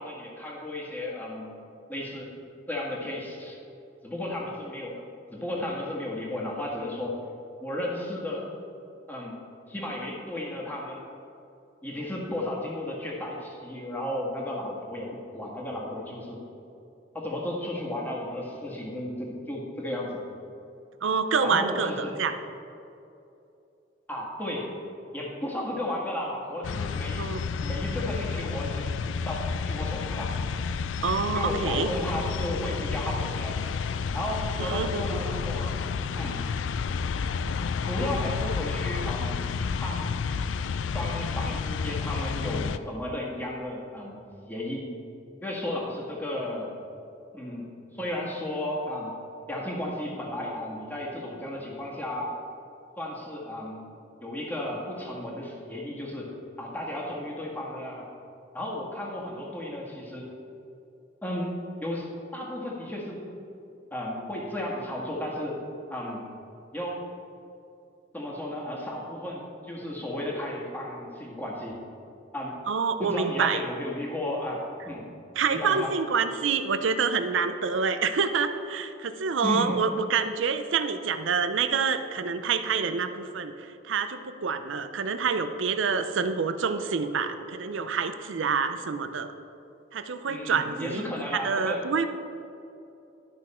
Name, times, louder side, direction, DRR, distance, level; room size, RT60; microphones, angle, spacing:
voice 1, 0.0-1.5 1.9-2.3 2.7-3.6 4.0-5.0 5.3-7.2 7.6-8.4 9.1-9.4 9.7-11.0 11.8-16.4 17.1-20.2 21.4-22.1 24.1-24.7 25.1-27.3 27.6-30.3 31.3-33.6 34.1-35.8 36.1-36.4 37.9-39.5 39.8-40.1 40.9-44.2 44.5-44.9 45.4-46.7 47.3-49.1 49.5-52.3 53.0-53.8 54.2-56.3 56.6-58.1 58.5-60.3 61.2-61.5 61.8-62.1 62.3-63.2 63.9-65.6 65.9-66.2 66.7-67.0 68.1-71.8 72.3-72.6 73.0-75.0 75.5-75.9 79.4-79.8 90.3-91.8, left 1 dB, 10° left, -3 dB, 1.7 m, -34 dB
voice 2, 21.0-22.3 27.2-27.5 31.0-31.9 34.6-35.0 72.7-73.6 75.4-83.5 83.9-89.3 89.9-91.0 91.3-92.1, right 5 dB, 85° right, 9 dB, 0.5 m, -27 dB
sound 1, 26.6-42.8, left 5 dB, 80° left, 0.4 m, -30 dB
12.0 x 6.1 x 4.3 m, 2.7 s
head